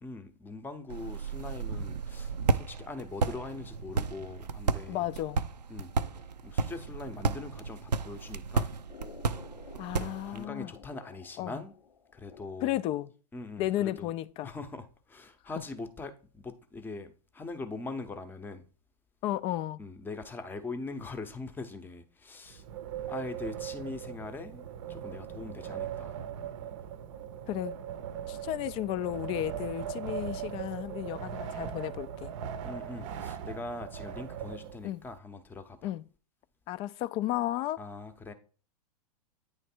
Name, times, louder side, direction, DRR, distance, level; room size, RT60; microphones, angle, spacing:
voice 1, 0.0-5.1 5.7-5.9 6.4-8.7 9.9-11.7 12.1-12.8 13.3-14.1 14.4-18.6 19.8-22.6 23.1-26.2 32.7-35.9 37.8-38.3, left 3 dB, 10° left, 0.7 m, -42 dB
sound 1, 0.9-10.5, right 4 dB, 90° right, 0.5 m, -33 dB
voice 2, 4.9-5.5 9.8-10.7 11.4-11.6 12.6-13.1 13.6-14.5 19.2-19.8 27.5-27.8 28.3-32.3 34.8-35.0 35.8-36.0 36.7-37.8, left 14 dB, 25° left, 0.3 m, -33 dB
sound 2, 8.9-12.9, left 7 dB, 80° left, 0.7 m, -52 dB
Wind, 22.5-35.1, right 9 dB, 50° right, 0.7 m, -39 dB
9.2 x 3.2 x 4.4 m
hypercardioid pair, 110°, 21 cm